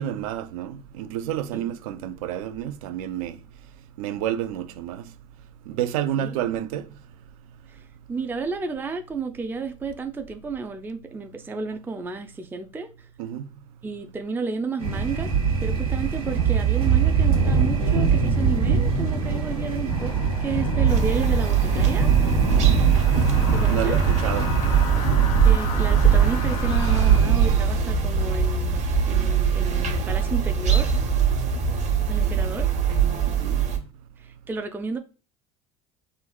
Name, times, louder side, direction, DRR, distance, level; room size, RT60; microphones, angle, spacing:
voice 1, 0.0-3.4 4.0-5.0 5.7-6.9 13.2-13.5 22.6-22.8 23.7-24.5 33.3-33.6, right 11 dB, 70° right, 0.4 m, -29 dB
voice 2, 8.1-13.1 13.8-15.3 15.6-20.1 20.4-22.1 23.5-24.0 25.1-30.9 32.1-32.7 34.2-35.0, right 4 dB, 10° right, 0.4 m, -32 dB
sound 1, 14.8-27.6, right 6 dB, 90° right, 1.1 m, -22 dB
sound 2, 19.9-27.2, left 7 dB, 85° left, 0.5 m, -37 dB
sound 3, 20.9-33.8, right 7 dB, 40° right, 1.0 m, -22 dB
3.2 x 2.4 x 2.3 m
hypercardioid pair, 70°, 19 cm